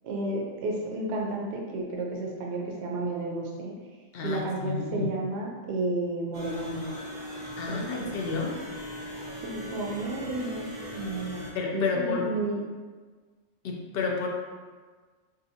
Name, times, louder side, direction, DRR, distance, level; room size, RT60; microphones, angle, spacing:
voice 1, 0.0-3.7 4.2-7.0 7.7-8.1 9.4-12.6, right 2 dB, 70° right, -1 dB, 0.8 m, -32 dB
voice 2, 4.1-5.1 7.6-8.6 11.5-12.3 13.6-14.3, left 5 dB, 60° left, 0 dB, 0.6 m, -30 dB
sound 1, 6.3-11.5, equal, 30° right, 0.7 m, -39 dB
3.9 x 2.6 x 2.7 m, 1.4 s
omnidirectional pair, 1.2 m